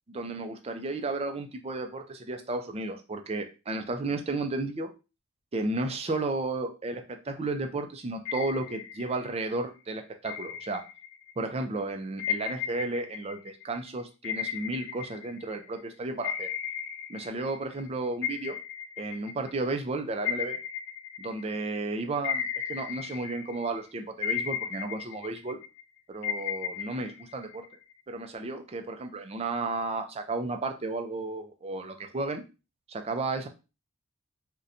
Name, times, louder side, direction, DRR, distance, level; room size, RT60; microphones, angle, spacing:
voice 1, 0.1-4.9 5.5-10.8 11.4-16.5 17.1-18.6 19.0-20.6 21.2-22.4 22.7-25.6 26.1-27.6 28.1-32.4 32.9-33.5, right 2 dB, 25° right, 6 dB, 0.4 m, -33 dB
sound 1, 8.3-9.5 10.2-11.4 12.2-15.8 16.2-17.9 18.2-21.8 22.2-23.8 24.2-25.8 26.2-27.9, left 9 dB, 55° left, 0.3 m, -35 dB
4.1 x 2.2 x 2.5 m, 0.30 s
head